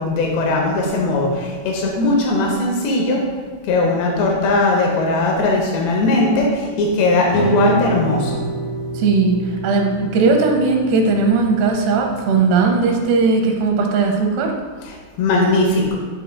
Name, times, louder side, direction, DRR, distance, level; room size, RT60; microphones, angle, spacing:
voice 1, 0.0-3.2 3.6-8.4 14.9-16.0, left 2 dB, 90° left, -1 dB, 3.1 m, -19 dB
sound 1, 7.3-13.6, right 2 dB, 70° left, 2.8 m, -28 dB
voice 2, 8.9-9.4 9.6-14.5, right 4 dB, 80° right, 2 dB, 3.0 m, -17 dB
10.5 x 5.7 x 2.2 m, 1.5 s
omnidirectional pair, 4.8 m